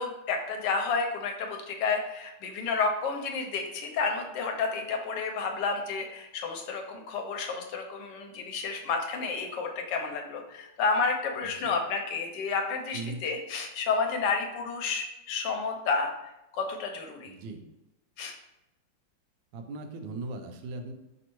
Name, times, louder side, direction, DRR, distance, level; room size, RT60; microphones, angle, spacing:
voice 1, 0.0-16.1 16.5-17.3 18.2-18.3, left 4 dB, 75° left, 3 dB, 1.2 m, -30 dB
voice 2, 11.4-11.8 12.9-13.2 17.3-17.6 19.5-20.9, right 3 dB, 90° right, 5 dB, 1.3 m, -38 dB
4.1 x 3.3 x 3.0 m, 0.93 s
omnidirectional pair, 1.9 m